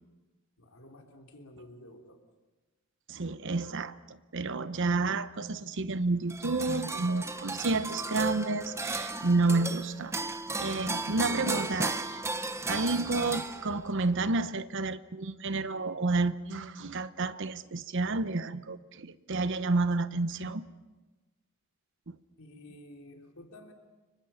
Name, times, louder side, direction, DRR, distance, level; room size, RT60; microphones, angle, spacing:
voice 1, 0.6-2.2 4.8-4.9 22.4-23.7, left 1 dB, 85° left, 3.5 m, -51 dB
voice 2, 3.1-10.1 10.6-12.1 12.7-20.6 22.1-22.2, right 3 dB, 60° right, 0.9 m, -30 dB
sound 1, 6.3-14.0, right 3 dB, 15° right, 0.9 m, -35 dB
29.5 x 24.5 x 5.8 m
head